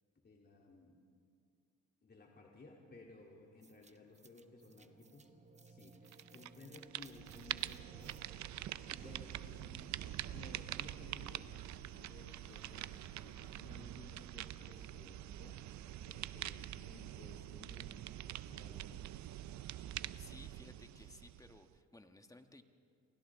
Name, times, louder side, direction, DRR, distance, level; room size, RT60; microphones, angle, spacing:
voice 1, 0.2-1.0 2.0-5.3 5.6-8.2 9.0-11.5 12.1-15.6 16.0-18.1 18.5-19.1, left 2 dB, 35° left, -2 dB, 3.0 m, -58 dB
sound 1, 3.6-10.0, right 4 dB, 25° right, 1.0 m, -60 dB
sound 2, 6.1-6.5 6.8-21.8, right 13 dB, 70° right, 0.6 m, -45 dB
sound 3, 8.1-13.5, left 10 dB, 75° left, 0.9 m, -66 dB
voice 2, 20.2-22.6, left 2 dB, 10° left, 7 dB, 1.4 m, -58 dB
30.0 x 23.5 x 3.7 m, 2.4 s
cardioid pair, 90°, 30 cm